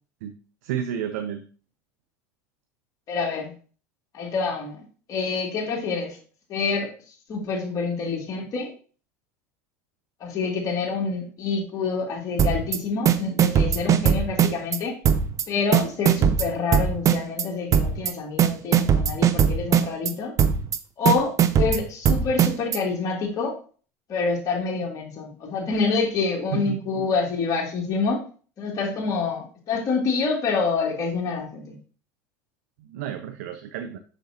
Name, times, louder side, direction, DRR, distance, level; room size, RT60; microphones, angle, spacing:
voice 1, 0.6-1.5 26.5-27.0 32.8-34.0, right 9 dB, 75° right, 8 dB, 0.7 m, -31 dB
voice 2, 3.1-3.5 4.1-4.8 5.1-6.2 6.5-6.9 7.3-8.7 10.2-15.0 15.5-20.3 21.0-23.6 24.1-28.2 28.6-31.8, left 4 dB, 45° left, 0 dB, 2.5 m, -27 dB
sound 1, 12.4-12.8 13.1-14.8 15.1-15.4 15.7-17.4 17.7-18.1 18.4-20.1 20.4-20.8 21.1-22.8, right 8 dB, 40° right, 0.6 m, -19 dB
6.5 x 6.3 x 2.9 m, 0.39 s
hypercardioid pair, 95°, 8 cm